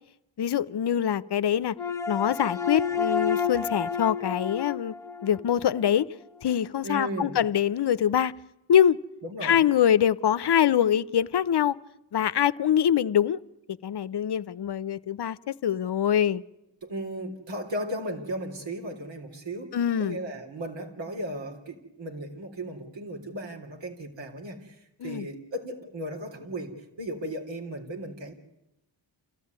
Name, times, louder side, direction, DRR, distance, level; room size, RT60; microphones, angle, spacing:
voice 1, 0.4-1.7 2.1-4.9 5.2-6.1 6.4-8.3 8.7-9.0 9.4-11.8 12.1-13.4 13.8-16.4 19.7-20.2 25.0-25.3, left 9 dB, 60° left, 0.8 m, -24 dB
sound 1, 1.8-6.1, left 6 dB, 5° left, 1.4 m, -30 dB
voice 2, 6.8-7.4 9.2-9.6 16.8-28.3, right 1 dB, 75° right, 3.8 m, -36 dB
28.5 x 14.5 x 9.6 m
cardioid pair, 60°, 45 cm